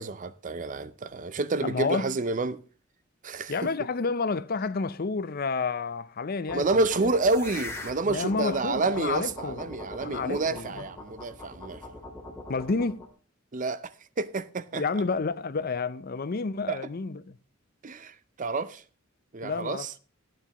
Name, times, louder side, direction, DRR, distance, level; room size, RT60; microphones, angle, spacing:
voice 1, 0.0-2.6 3.2-3.5 6.5-11.8 13.5-13.9 14.2-14.8 16.7-16.8 17.8-18.8 19.3-19.9, right 3 dB, 40° right, 0.6 m, -29 dB
voice 2, 1.6-2.1 3.5-7.1 8.1-10.9 12.5-13.1 14.7-17.4 19.4-19.9, left 4 dB, 50° left, 0.6 m, -30 dB
sound 1, 6.5-13.1, left 2 dB, 15° left, 2.0 m, -42 dB
15.0 x 9.5 x 3.0 m
head